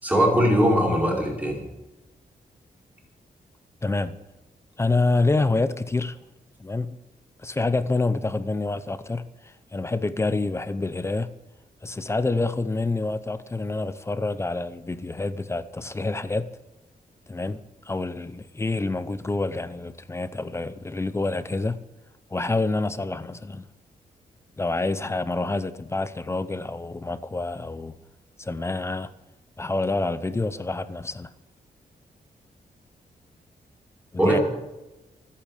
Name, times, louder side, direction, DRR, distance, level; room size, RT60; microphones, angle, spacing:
voice 1, 0.0-1.6 34.2-34.4, equal, 10° right, 4.8 m, -20 dB
voice 2, 3.8-4.2 4.8-6.2 6.6-7.0 7.4-11.3 11.8-16.5 17.3-17.6 17.8-21.8 22.3-23.6 24.6-27.9 28.4-29.1 29.6-31.3 34.1-34.4, left 3 dB, 15° left, 0.7 m, -27 dB
26.0 x 8.6 x 5.1 m
wide cardioid pair, 170°, 16 cm